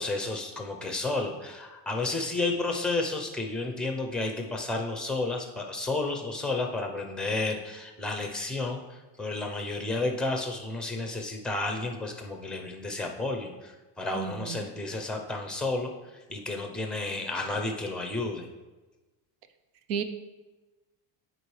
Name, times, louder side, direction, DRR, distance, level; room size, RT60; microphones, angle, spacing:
voice 1, 0.0-18.5, left 2 dB, ahead, 3 dB, 0.6 m, -32 dB
voice 2, 14.1-14.7 19.9-20.0, right 7 dB, 75° right, 10 dB, 0.8 m, -32 dB
9.8 x 4.6 x 3.2 m, 1.2 s
cardioid pair, 145°, 47 cm